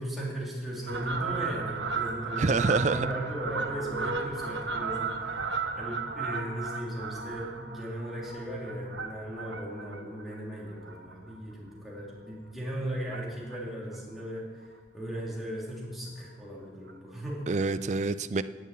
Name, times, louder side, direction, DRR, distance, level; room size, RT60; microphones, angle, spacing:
voice 1, 0.0-17.4, right 1 dB, ahead, 3.2 m, -37 dB
Fowl, 0.9-11.7 12.1-12.3 13.1-13.6 13.9-14.0 14.2-14.3 14.6-14.7 15.1-15.2 16.2-16.3 16.9-17.0, right 4 dB, 80° right, 1.0 m, -35 dB
voice 2, 2.4-3.1 17.5-18.4, right 3 dB, 40° right, 0.4 m, -26 dB
11.0 x 7.5 x 8.5 m
head